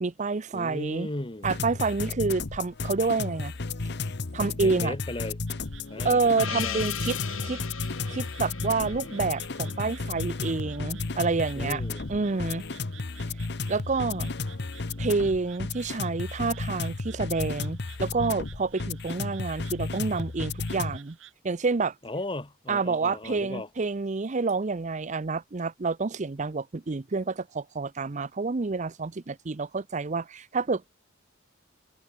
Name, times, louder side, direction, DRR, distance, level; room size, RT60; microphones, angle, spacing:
voice 1, 0.0-1.1 1.4-3.5 4.3-4.9 6.0-7.6 8.1-11.8 12.1-12.6 13.7-14.3 15.0-21.2 21.4-21.9 22.7-30.9, right 4 dB, 35° right, 0.6 m, -28 dB
voice 2, 0.5-1.7 4.6-5.4 5.9-6.2 6.6-6.8 11.6-12.1 22.0-23.7, left 1 dB, 25° left, 1.4 m, -36 dB
sound 1, 1.4-21.0, left 3 dB, 55° left, 1.0 m, -33 dB
sound 2, 5.5-21.3, right 11 dB, 75° right, 6.2 m, -53 dB
Gong, 6.4-11.1, left 7 dB, 85° left, 4.6 m, -38 dB
head